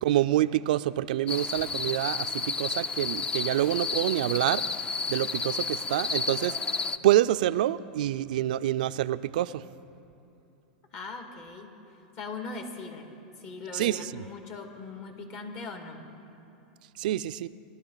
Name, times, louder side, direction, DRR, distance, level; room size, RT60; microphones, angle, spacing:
voice 1, 0.0-4.6 5.1-6.6 7.0-9.6 13.7-14.2 17.0-17.5, right 13 dB, 75° right, 14 dB, 0.3 m, -27 dB
sound 1, 1.3-7.0, left 4 dB, 20° left, 0.4 m, -31 dB
voice 2, 10.9-13.1 13.4-16.0, left 3 dB, 50° left, 3 dB, 2.1 m, -40 dB
20.0 x 12.0 x 4.0 m, 2.9 s
supercardioid pair, 125°, 5 cm